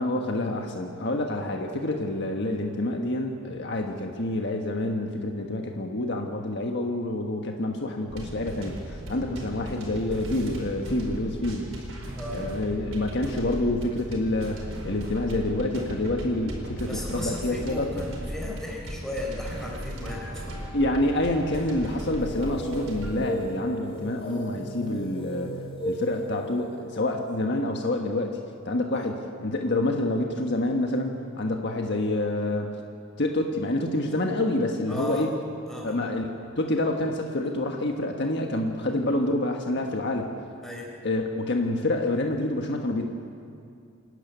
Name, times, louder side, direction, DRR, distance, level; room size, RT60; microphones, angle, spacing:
voice 1, 0.0-11.7 12.3-17.9 20.7-25.5 25.8-28.4 28.6-32.7 33.2-35.3 35.8-40.3 41.0-43.1, left 1 dB, 55° left, 2 dB, 1.5 m, -27 dB
sound 1, 8.1-23.1, equal, 80° right, 4.8 m, -37 dB
voice 2, 16.9-20.8 28.9-29.1 34.9-35.3 35.7-36.0 40.6-40.9, left 1 dB, ahead, -2 dB, 4.4 m, -36 dB
sound 2, 22.2-28.6, equal, 25° left, 3.1 m, -36 dB
28.0 x 11.5 x 9.4 m, 2.4 s
head